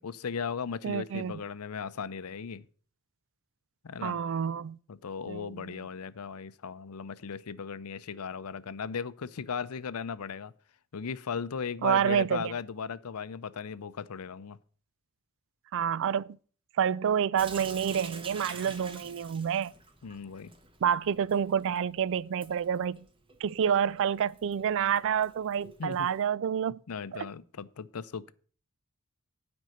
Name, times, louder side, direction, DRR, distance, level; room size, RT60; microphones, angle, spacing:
voice 1, 0.0-2.7 3.8-4.2 4.9-10.5 10.9-14.6 20.0-20.5 25.8-26.1 26.7-28.3, left 6 dB, 80° left, 0.6 m, -37 dB
voice 2, 0.8-1.3 4.0-4.8 5.3-5.8 11.8-12.5 15.7-16.4 16.8-19.7 20.8-23.0 23.4-26.8 27.1-27.3, right 8 dB, 60° right, 0.4 m, -28 dB
Sink (filling or washing) / Drip, 17.4-26.3, right 3 dB, 25° right, 1.2 m, -48 dB
9.2 x 5.4 x 7.8 m
head